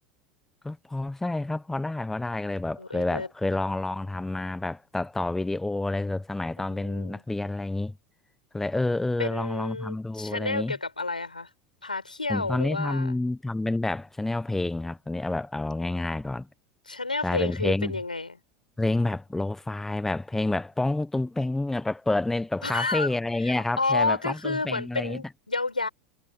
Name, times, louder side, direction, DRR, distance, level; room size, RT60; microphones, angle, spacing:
voice 1, 0.6-7.9 8.5-10.8 12.3-16.5 17.2-18.0 18.8-25.2, left 2 dB, 5° left, 1.0 m, -29 dB
voice 2, 2.8-3.3 6.6-7.2 9.2-11.5 11.8-13.2 16.9-18.4 22.6-23.1 23.4-25.9, left 3 dB, 90° left, 5.4 m, -30 dB
figure-of-eight pair, 80°, 4 cm